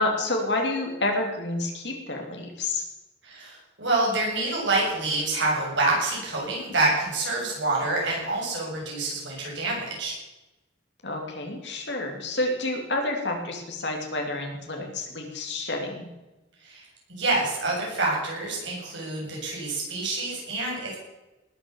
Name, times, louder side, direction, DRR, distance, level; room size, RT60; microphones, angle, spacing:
voice 1, 0.0-2.8 11.0-16.1, left 2 dB, 65° left, 2 dB, 3.0 m, -29 dB
voice 2, 3.2-10.1 16.6-21.0, right 2 dB, 75° right, -3 dB, 7.5 m, -27 dB
19.5 x 8.2 x 7.1 m, 1.0 s
head